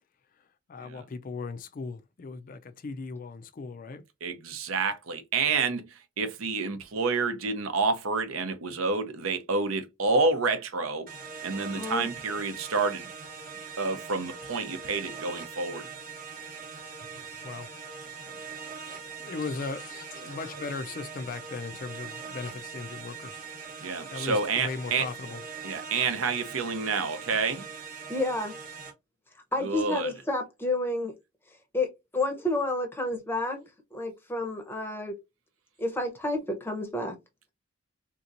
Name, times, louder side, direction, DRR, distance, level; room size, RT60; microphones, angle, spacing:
voice 1, 0.7-4.0 17.1-17.7 19.2-23.4 24.1-25.4, left 4 dB, 40° left, 0.3 m, -38 dB
voice 2, 4.2-11.1 11.4-13.1 13.8-15.9 20.2-20.4 23.8-25.1 25.6-27.7 29.6-30.1, right 4 dB, 70° right, 0.7 m, -29 dB
sound 1, 11.1-28.9, right 6 dB, 40° right, 0.9 m, -42 dB
voice 3, 11.7-12.1 28.1-28.5 29.5-31.1 31.7-35.2 35.8-37.1, left 2 dB, 10° left, 0.7 m, -30 dB
3.7 x 2.8 x 2.5 m
head